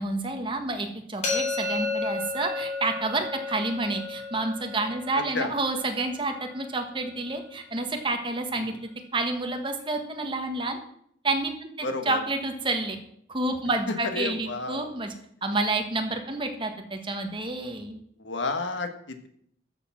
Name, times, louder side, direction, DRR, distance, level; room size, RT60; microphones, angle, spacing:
voice 1, 0.0-10.8 11.2-13.0 13.3-15.1 15.4-18.0, right 2 dB, 25° right, 5 dB, 1.5 m, -29 dB
sound 1, 1.2-7.1, left 3 dB, 35° left, 3.9 m, -33 dB
voice 2, 5.1-5.5 8.6-8.7 11.8-12.2 14.1-14.9 18.2-19.3, left 3 dB, 85° left, 8 dB, 1.5 m, -32 dB
13.5 x 6.8 x 5.8 m, 0.68 s
head